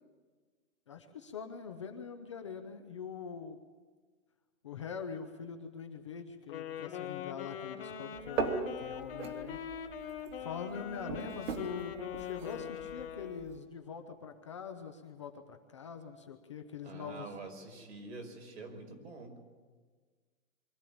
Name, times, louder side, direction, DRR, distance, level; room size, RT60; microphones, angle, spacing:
voice 1, 0.9-3.6 4.6-9.6 10.4-17.3, left 6 dB, 25° left, 5 dB, 0.7 m, -43 dB
Wind instrument woodwind instrument, 6.4-13.6, left 8 dB, 40° left, 2.7 m, -42 dB
sound 1, 8.1-13.6, right 4 dB, 70° right, 2.9 m, -40 dB
voice 2, 16.8-19.4, right 3 dB, 55° right, 2 dB, 5.6 m, -46 dB
24.0 x 14.0 x 8.6 m, 1.5 s
hypercardioid pair, 175°, 41 cm